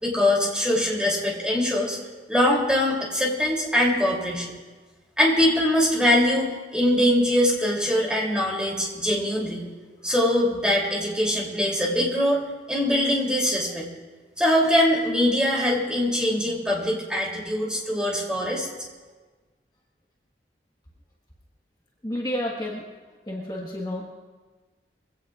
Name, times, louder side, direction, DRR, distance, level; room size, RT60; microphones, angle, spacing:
voice 1, 0.0-2.0 2.3-4.5 5.2-9.6 10.0-12.4 12.7-13.9 14.4-18.7, left 1 dB, 5° right, -3 dB, 3.1 m, -22 dB
voice 2, 22.0-22.9 23.3-24.1, left 1 dB, 25° left, -3 dB, 1.5 m, -30 dB
23.0 x 17.0 x 2.5 m, 1.3 s
head